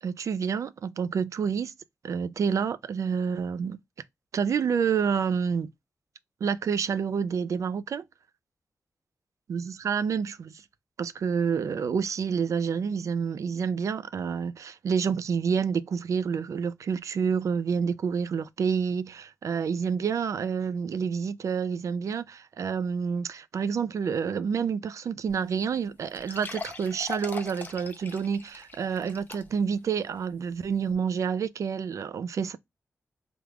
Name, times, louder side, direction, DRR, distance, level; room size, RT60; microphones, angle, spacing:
voice 1, 0.0-1.7 2.0-3.8 4.3-5.7 6.4-8.0 9.5-10.6 11.0-32.6, right 6 dB, 65° right, 0.4 m, -28 dB
sound 1, 25.3-25.4 25.7-25.8 26.1-29.8 30.2-30.3 30.9-31.0, left 3 dB, 30° left, 0.6 m, -41 dB
3.5 x 2.3 x 3.0 m
wide cardioid pair, 165°, 6 cm